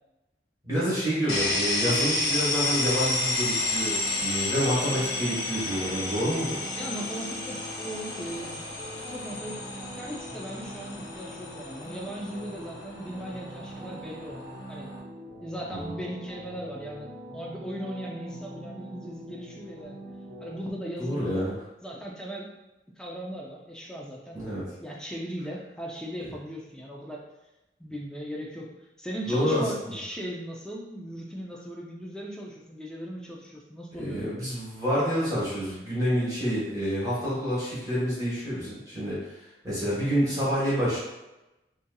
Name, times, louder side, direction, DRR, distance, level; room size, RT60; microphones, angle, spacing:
voice 1, 0.6-6.6 15.7-16.0 21.0-21.6 24.3-24.7 29.2-29.9 33.9-39.3 39.6-41.0, equal, 20° right, -9 dB, 1.0 m, -28 dB
sound 1, 1.3-15.0, left 2 dB, 75° left, 0.6 m, -31 dB
sound 2, 3.5-20.7, equal, 60° right, 0.7 m, -43 dB
voice 2, 6.7-7.6 7.8-8.5 9.1-9.5 10.0-14.9 15.4-17.1 17.3-20.0 20.4-21.5 21.8-22.5 23.0-24.4 24.8-27.3 27.8-34.3, equal, 5° left, -2 dB, 0.4 m, -38 dB
2.7 x 2.6 x 2.2 m, 0.98 s
head